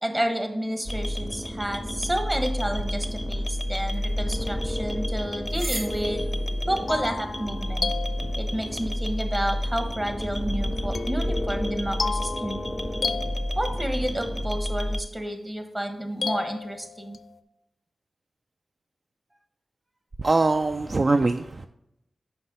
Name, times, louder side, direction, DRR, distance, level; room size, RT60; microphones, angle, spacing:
voice 1, 0.0-6.2 6.7-7.9 8.4-12.7 13.6-17.2, right 1 dB, 20° right, 6 dB, 1.2 m, -30 dB
sound 1, 0.9-15.0, left 1 dB, 5° left, 0.6 m, -29 dB
sound 2, 2.7-9.2, right 1 dB, 75° right, 1.5 m, -42 dB
sound 3, 6.4-8.9 10.9-14.1 16.2-17.4, left 5 dB, 75° left, 0.4 m, -34 dB
voice 2, 20.2-21.7, right 3 dB, 50° right, 8 dB, 0.3 m, -22 dB
5.8 x 5.3 x 5.4 m, 0.84 s
cardioid pair, 50°, 0 cm